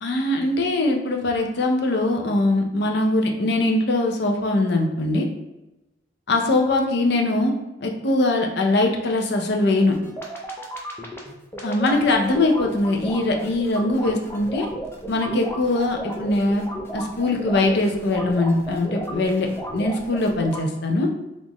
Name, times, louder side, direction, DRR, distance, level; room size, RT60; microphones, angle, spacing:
voice 1, 0.0-5.3 6.3-7.5 7.8-10.0 11.6-14.7 15.1-16.6 16.9-21.1, left 2 dB, 60° left, 3 dB, 0.6 m, -22 dB
sound 1, 9.8-20.6, right 1 dB, 15° left, 0.5 m, -34 dB
3.7 x 2.5 x 3.0 m, 0.97 s
head